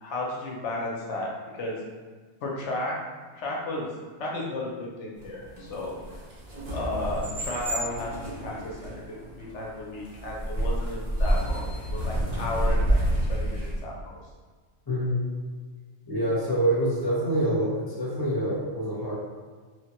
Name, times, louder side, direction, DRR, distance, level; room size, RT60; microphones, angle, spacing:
voice 1, 0.0-1.8 2.4-3.0 3.3-3.9 4.2-6.0 6.7-13.0 13.3-14.2, left 2 dB, 70° left, -3 dB, 0.8 m, -34 dB
sound 1, 5.2-13.8, right 1 dB, 50° right, 0.5 m, -29 dB
voice 2, 14.9-15.2 16.0-19.1, right 1 dB, 25° left, -7 dB, 0.6 m, -26 dB
3.0 x 2.1 x 2.8 m, 1.5 s
omnidirectional pair, 1.4 m